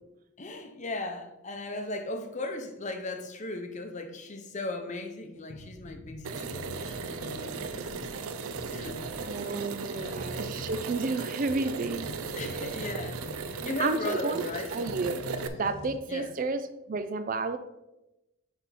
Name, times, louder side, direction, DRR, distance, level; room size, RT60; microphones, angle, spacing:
voice 1, 0.4-7.8 8.7-9.5 9.9-10.2 12.4-14.7 16.1-16.3, left 2 dB, 35° left, 5 dB, 0.7 m, -37 dB
sound 1, 5.5-16.0, left 1 dB, 65° left, 0.7 m, -45 dB
sound 2, 6.2-15.5, right 4 dB, 90° right, 0.6 m, -37 dB
voice 2, 9.3-12.1 13.8-14.4 14.7-15.2 15.5-17.6, right 3 dB, 40° right, 10 dB, 0.4 m, -31 dB
9.7 x 3.5 x 4.1 m, 0.94 s
head